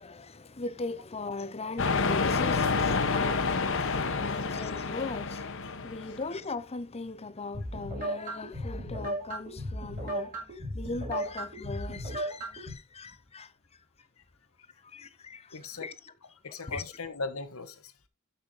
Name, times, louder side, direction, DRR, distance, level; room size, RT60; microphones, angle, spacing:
voice 1, 0.0-13.5 14.8-15.9 16.6-16.8, left 3 dB, 30° left, 0.8 m, -39 dB
sound 1, 1.8-6.3, left 4 dB, 65° left, 1.3 m, -28 dB
sound 2, 7.5-12.7, right 1 dB, 40° right, 5.1 m, -36 dB
voice 2, 15.5-15.9 16.4-17.9, left 3 dB, 90° left, 1.4 m, -39 dB
12.5 x 5.8 x 4.0 m
head